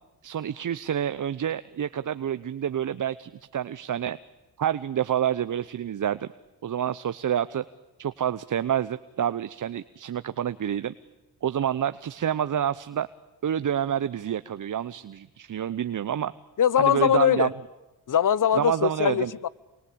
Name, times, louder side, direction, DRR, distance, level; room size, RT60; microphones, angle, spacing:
voice 1, 0.2-4.2 4.6-6.3 6.6-7.6 8.0-10.9 11.4-13.1 13.4-16.3 16.8-17.5 18.6-19.3, right 9 dB, 45° right, 14 dB, 0.9 m, -28 dB
voice 2, 16.6-17.5 18.1-19.5, left 9 dB, 45° left, 22 dB, 1.0 m, -22 dB
28.0 x 24.0 x 8.7 m, 1.1 s
supercardioid pair, 60°, 43 cm